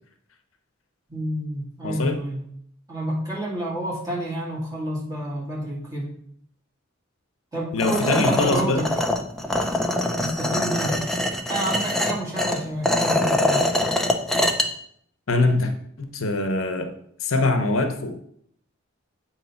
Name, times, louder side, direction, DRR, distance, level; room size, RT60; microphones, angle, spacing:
voice 1, 1.1-2.4 2.9-6.1 7.5-8.8 10.2-11.0 11.5-13.7, right 1 dB, 20° right, 2.0 m, -29 dB
voice 2, 1.8-2.2 7.7-8.8 15.3-15.7 16.0-18.1, left 2 dB, 75° left, 0.8 m, -23 dB
sound 1, 7.8-14.7, left 1 dB, ahead, 0.5 m, -24 dB
7.7 x 3.0 x 5.7 m
head